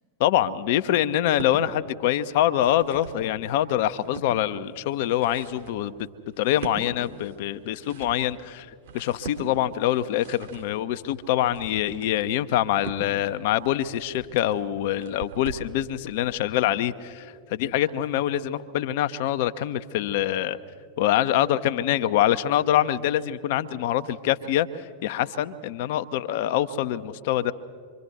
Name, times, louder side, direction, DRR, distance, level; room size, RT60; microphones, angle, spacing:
voice 1, 0.2-5.9 6.4-8.7 8.9-20.6 21.0-27.5, left 12 dB, 50° left, 13 dB, 0.7 m, -25 dB
sound 1, 1.1-1.6 2.3-3.2 3.7-4.3 4.9-15.7, right 5 dB, 60° right, 3.2 m, -42 dB
26.5 x 24.0 x 4.2 m, 2.2 s
figure-of-eight pair, 90°, 0 cm